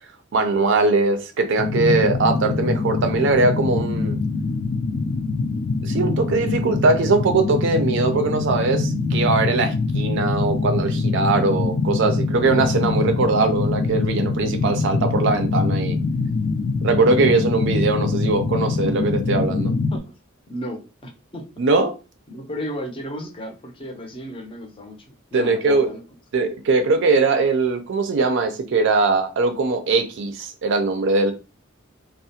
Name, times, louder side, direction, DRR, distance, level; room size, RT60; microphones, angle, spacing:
voice 1, 0.3-4.2 5.8-16.0 16.8-19.7 21.6-21.9 25.3-25.9 26.3-31.3, right 3 dB, 60° right, 0.4 m, -21 dB
sound 1, 1.6-20.0, left 3 dB, 80° left, 0.4 m, -23 dB
voice 2, 20.5-21.4 22.3-26.0, equal, 25° left, 0.5 m, -34 dB
2.4 x 2.0 x 2.7 m
head